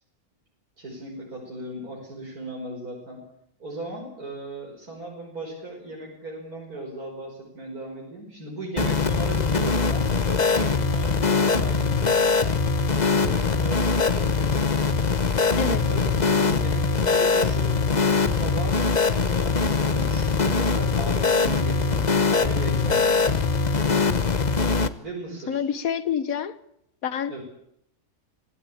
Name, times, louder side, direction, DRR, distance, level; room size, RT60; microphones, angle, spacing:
voice 1, 0.8-3.2 3.6-12.3 13.2-14.8 15.5-17.7 18.3-18.8 19.2-23.1 25.0-25.6 27.3-27.4, right 2 dB, 90° right, -1 dB, 5.8 m, -37 dB
sound 1, 8.8-24.9, left 4 dB, 30° left, 1.1 m, -22 dB
voice 2, 25.5-26.6 27.0-27.4, left 8 dB, 70° left, 14 dB, 1.7 m, -27 dB
26.0 x 16.0 x 8.7 m, 0.75 s
omnidirectional pair, 1.5 m